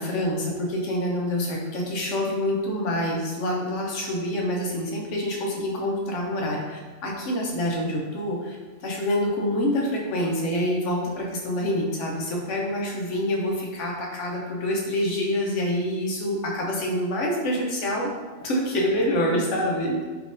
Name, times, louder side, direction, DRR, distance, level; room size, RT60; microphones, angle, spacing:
voice 1, 0.0-8.6 8.8-18.1 18.4-20.0, left 1 dB, 70° left, -1 dB, 1.0 m, -26 dB
3.5 x 2.9 x 2.5 m, 1.3 s
omnidirectional pair, 1.3 m